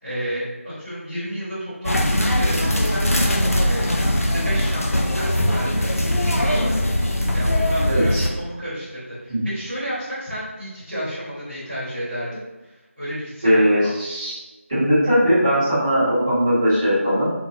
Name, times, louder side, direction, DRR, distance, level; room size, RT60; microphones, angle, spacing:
voice 1, 0.0-3.3 3.6-13.9, equal, ahead, -30 dB, 0.5 m, -32 dB
sound 1, 1.8-8.3, left 1 dB, 85° left, 0.6 m, -21 dB
voice 2, 7.9-8.2 9.3-9.4 13.4-14.4 14.7-17.2, equal, 20° right, -14 dB, 1.2 m, -19 dB
3.9 x 2.4 x 2.8 m, 1.1 s
figure-of-eight pair, 175°, 8 cm